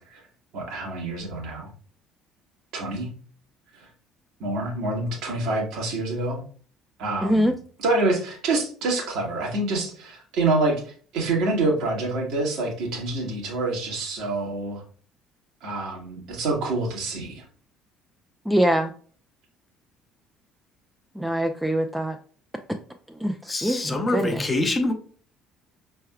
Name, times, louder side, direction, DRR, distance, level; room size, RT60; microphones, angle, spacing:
voice 1, 0.5-1.7 2.7-3.1 4.4-6.4 7.0-7.5 7.8-14.8 15.6-17.4, right 2 dB, 60° right, 0 dB, 1.4 m, -26 dB
voice 2, 7.2-7.5 18.5-18.9 21.2-22.2 23.2-23.3 23.6-24.4, equal, ahead, 5 dB, 0.5 m, -23 dB
voice 3, 23.5-24.9, left 2 dB, 20° left, 5 dB, 0.9 m, -25 dB
5.3 x 3.4 x 2.2 m, 0.43 s
figure-of-eight pair, 55°, 0 cm